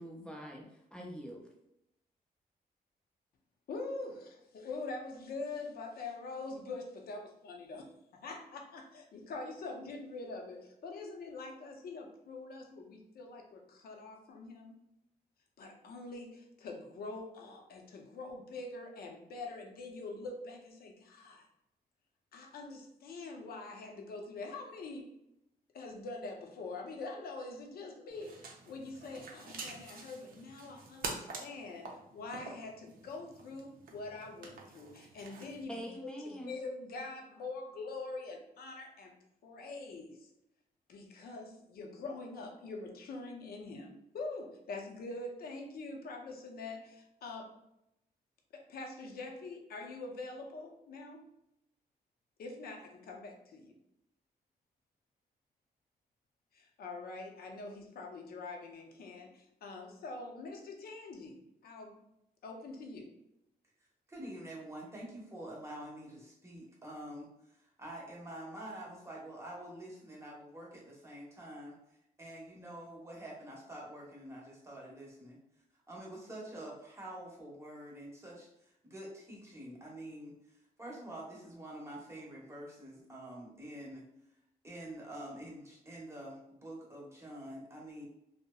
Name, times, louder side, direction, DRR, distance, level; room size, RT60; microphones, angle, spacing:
voice 1, 0.0-1.5 35.7-36.6, equal, 5° left, -1 dB, 0.5 m, -44 dB
voice 2, 3.7-7.9 8.2-14.8 15.6-21.5 22.3-25.1 25.7-35.8 36.2-39.1 39.4-40.3 40.9-47.5 48.5-51.2 52.4-53.7 56.5-62.0 62.4-63.1, left 3 dB, 75° left, 2 dB, 0.5 m, -44 dB
sound 1, 28.1-35.6, right 3 dB, 65° right, 0.5 m, -47 dB
voice 3, 64.1-67.3 67.6-71.7 72.2-75.4 75.9-84.0 84.6-88.1, right 1 dB, 15° right, -4 dB, 0.9 m, -47 dB
2.7 x 2.0 x 2.2 m, 0.82 s
cardioid pair, 90°, 16 cm